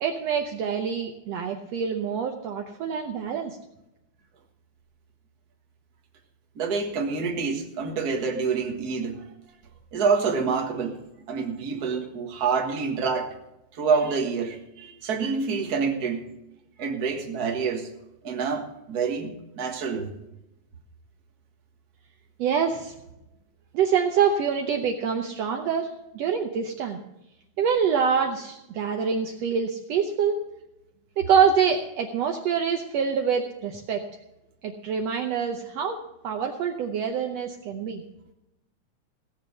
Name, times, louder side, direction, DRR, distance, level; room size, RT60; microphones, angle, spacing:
voice 1, 0.0-3.6 22.4-22.9 23.7-27.0 27.6-30.4 31.2-34.0 34.6-36.0 36.2-38.0, right 7 dB, 65° right, 3 dB, 1.8 m, -25 dB
voice 2, 6.6-9.2 9.9-11.0 11.3-13.3 13.7-16.3 16.8-17.9 18.2-20.1, right 5 dB, 40° right, 2 dB, 1.8 m, -27 dB
17.0 x 7.3 x 6.7 m, 0.89 s
omnidirectional pair, 3.5 m